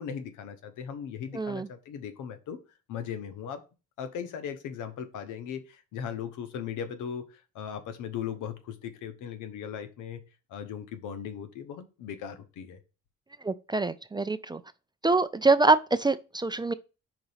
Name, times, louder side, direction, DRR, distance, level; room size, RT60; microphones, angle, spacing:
voice 1, 0.0-2.6 2.9-3.6 4.0-10.2 10.5-12.8, left 8 dB, 90° left, 1.1 m, -38 dB
voice 2, 1.3-1.7 13.4-14.6 15.0-16.7, right 3 dB, 15° right, 0.4 m, -25 dB
5.0 x 3.9 x 5.6 m
cardioid pair, 90°, 30 cm